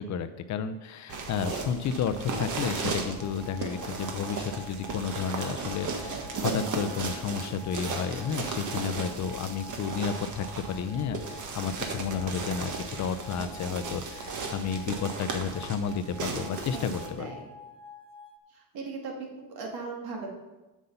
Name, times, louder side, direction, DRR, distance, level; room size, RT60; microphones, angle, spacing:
voice 1, 0.0-17.3, left 6 dB, 45° left, 10 dB, 0.6 m, -32 dB
sound 1, 1.1-17.1, right 4 dB, 50° right, 1.5 m, -36 dB
sound 2, 3.2-18.3, left 5 dB, 15° left, 0.8 m, -48 dB
voice 2, 16.9-17.5 18.5-20.3, right 4 dB, 65° right, 0 dB, 2.3 m, -38 dB
7.9 x 7.3 x 5.5 m, 1.1 s
cardioid pair, 130°, 39 cm